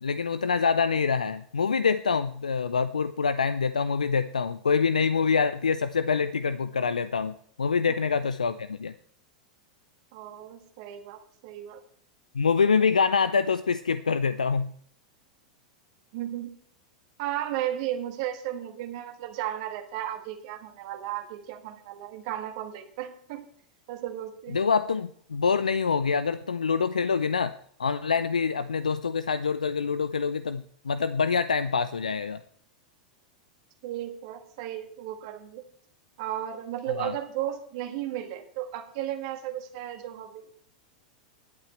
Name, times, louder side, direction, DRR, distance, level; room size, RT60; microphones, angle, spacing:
voice 1, 0.0-8.9 12.3-14.7 24.5-27.5 27.8-32.4 37.0-37.1, left 5 dB, 80° left, 13 dB, 0.4 m, -25 dB
voice 2, 10.1-11.8 16.1-16.5 17.2-23.5 23.9-24.6 33.8-35.6 36.2-40.5, right 12 dB, 55° right, 5 dB, 1.5 m, -34 dB
20.0 x 8.4 x 3.2 m, 0.62 s
figure-of-eight pair, 90°, 4 cm